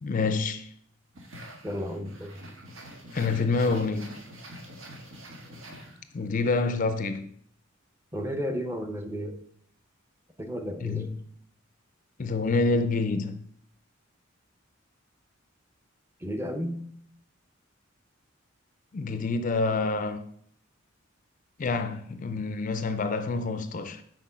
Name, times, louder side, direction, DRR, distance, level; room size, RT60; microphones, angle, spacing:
voice 1, 0.0-0.7 3.1-4.1 6.1-7.3 10.8-11.1 12.2-13.4 18.9-20.2 21.6-24.0, left 3 dB, 40° left, 0.4 m, -27 dB
sound 1, 1.1-6.4, right 1 dB, 80° right, 1.4 m, -45 dB
voice 2, 1.6-2.4 8.1-9.4 10.4-11.1 16.2-16.8, equal, 10° right, 0.6 m, -33 dB
6.0 x 4.5 x 5.6 m
head